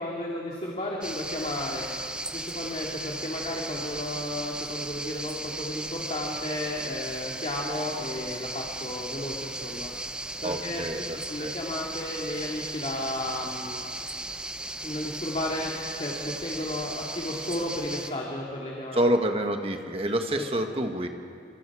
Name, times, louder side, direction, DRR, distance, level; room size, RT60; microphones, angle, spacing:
voice 1, 0.0-1.9 2.3-9.9 10.4-10.9 11.3-13.8 14.8-19.0 20.3-20.4, left 1 dB, 35° left, -2 dB, 2.3 m, -33 dB
sound 1, 1.0-18.1, right 2 dB, 5° right, 0.6 m, -36 dB
voice 2, 10.4-11.5 18.9-21.1, right 1 dB, 35° right, 5 dB, 1.4 m, -27 dB
27.0 x 25.0 x 4.9 m, 2.6 s
head